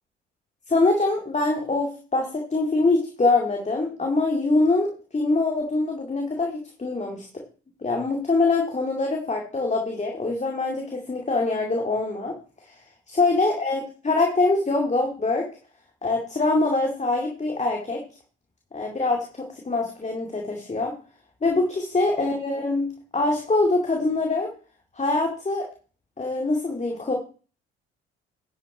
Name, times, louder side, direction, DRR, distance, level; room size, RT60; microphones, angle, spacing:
voice 1, 0.7-4.9 5.1-7.3 7.8-12.3 12.7-12.8 13.1-15.5 16.0-18.0 18.7-20.9 21.4-24.5 25.0-25.7 26.2-27.1, left 3 dB, 25° left, 1 dB, 2.3 m, -24 dB
11.0 x 6.0 x 5.0 m, 0.38 s
hypercardioid pair, 50°, 30 cm